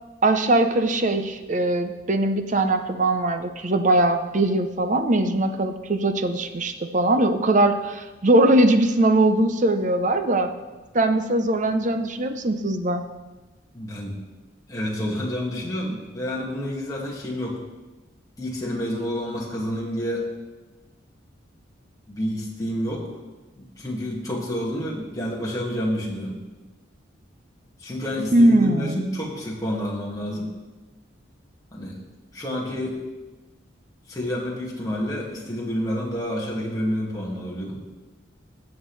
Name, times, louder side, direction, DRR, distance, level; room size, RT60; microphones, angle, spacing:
voice 1, 0.2-10.5 10.9-13.0 28.3-29.0, right 1 dB, 40° right, 8 dB, 0.6 m, -21 dB
voice 2, 13.7-14.2 14.7-17.6 18.4-20.3 22.1-23.1 23.6-26.4 27.8-30.5 31.7-32.0 32.3-33.0 34.1-37.8, equal, 15° left, -4 dB, 2.0 m, -29 dB
16.5 x 7.3 x 3.2 m, 1.2 s
head